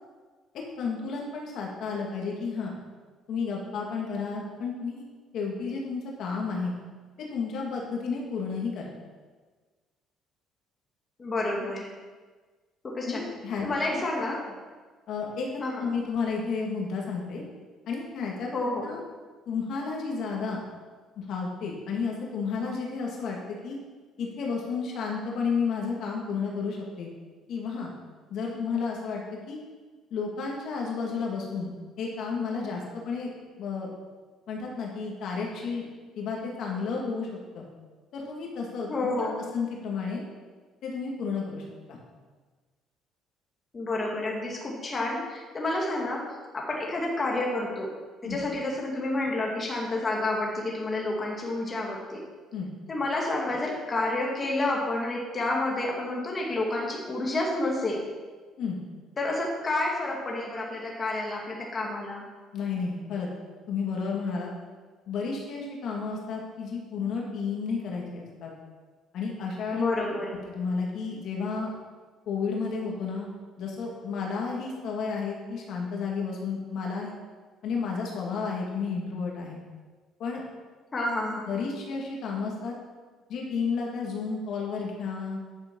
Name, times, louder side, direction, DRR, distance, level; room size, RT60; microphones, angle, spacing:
voice 1, 0.8-2.8 3.3-5.0 5.3-6.7 7.2-8.9 13.0-14.3 15.1-17.4 17.9-18.5 18.8-19.0 19.5-20.6 21.2-23.8 24.2-27.1 27.5-27.9 28.3-29.6 30.1-31.7 32.0-33.3 33.6-33.9 34.5-35.8 36.2-37.3 37.5-37.6 38.1-40.2 40.8-42.0 48.2-48.4 52.5-52.7 58.6-58.8 62.5-63.3 63.7-64.5 65.1-68.5 69.1-69.9 70.5-71.7 72.3-73.3 73.6-77.1 77.6-79.6 80.2-80.4 81.5-82.8 83.3-85.4, left 5 dB, 65° left, -1 dB, 2.4 m, -32 dB
voice 2, 11.2-11.9 12.8-13.2 13.6-14.4 15.6-15.9 18.5-18.9 38.9-39.4 43.7-46.2 46.5-47.9 48.2-52.2 52.9-58.0 59.2-62.2 69.7-70.3 80.9-81.5, left 2 dB, 30° left, -1 dB, 2.3 m, -29 dB
10.5 x 7.3 x 5.5 m, 1.4 s
cardioid pair, 115°, 0 cm